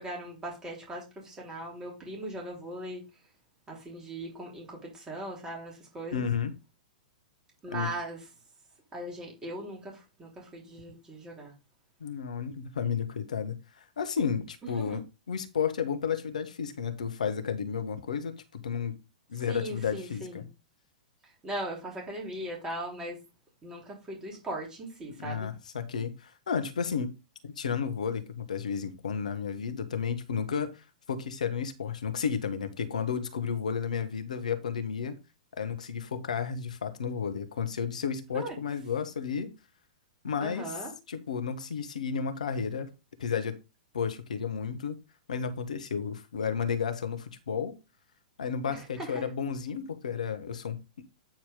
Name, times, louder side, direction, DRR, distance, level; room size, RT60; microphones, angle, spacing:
voice 1, 0.0-3.0 3.7-6.3 7.6-8.2 8.9-11.5 14.6-15.0 19.5-20.4 21.2-23.2 23.6-25.5 38.3-38.6 40.4-40.9 48.7-49.3, right 1 dB, 15° right, 3.7 m, -39 dB
voice 2, 6.1-6.5 7.7-7.9 12.0-19.0 19.3-20.4 25.2-27.1 27.4-35.2 35.6-39.5 40.2-40.7 41.1-42.9 43.2-43.5 43.9-45.0 45.3-47.7 48.4-50.8, left 6 dB, 65° left, 1.3 m, -32 dB
9.0 x 4.6 x 3.8 m
figure-of-eight pair, 105°, 4 cm